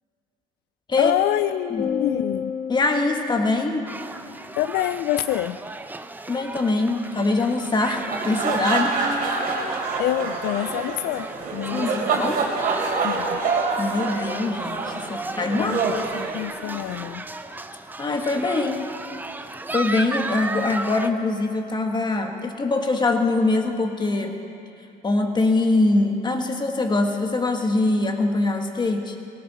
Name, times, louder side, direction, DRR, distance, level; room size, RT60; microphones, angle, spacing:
voice 1, 1.0-2.6 4.6-5.6 10.0-12.2 13.0-13.4 14.1-14.4 15.5-17.3, left 14 dB, 75° left, 13 dB, 0.4 m, -27 dB
sound 1, 1.8-4.3, left 7 dB, 55° left, 1.6 m, -31 dB
voice 2, 2.7-3.9 6.3-9.0 11.7-12.4 13.8-15.7 18.0-18.9 19.7-24.3 25.0-29.2, left 2 dB, 25° left, 4 dB, 1.6 m, -23 dB
sound 2, 3.9-21.1, right 2 dB, 10° right, 0.6 m, -35 dB
sound 3, 7.9-17.0, right 4 dB, 60° right, 3.1 m, -26 dB
18.5 x 18.0 x 4.3 m, 2.6 s
cardioid pair, 110°, 17 cm